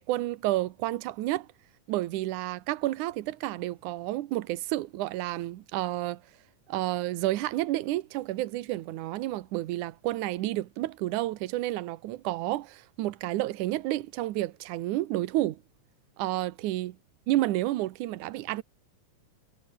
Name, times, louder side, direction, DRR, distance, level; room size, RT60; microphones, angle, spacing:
voice 1, 0.0-1.5 1.9-6.2 6.7-15.6 16.2-17.0 17.3-18.6, right 16 dB, 80° right, 2.4 m, -30 dB
omnidirectional pair, 3.6 m